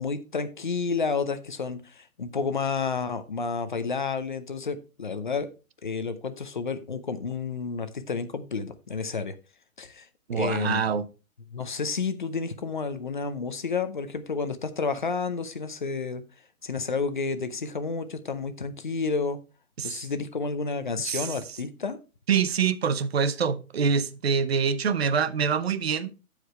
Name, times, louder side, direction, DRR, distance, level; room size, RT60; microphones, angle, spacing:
voice 1, 0.0-5.5 5.8-9.3 9.8-10.1 10.3-10.9 11.5-16.2 16.6-19.4 19.8-22.0, left 4 dB, 35° left, 0.6 m, -30 dB
voice 2, 10.3-11.1 19.8-20.0 21.0-21.3 22.3-26.1, right 6 dB, 45° right, 0.6 m, -25 dB
14.5 x 5.0 x 3.1 m
hypercardioid pair, 180°, 42 cm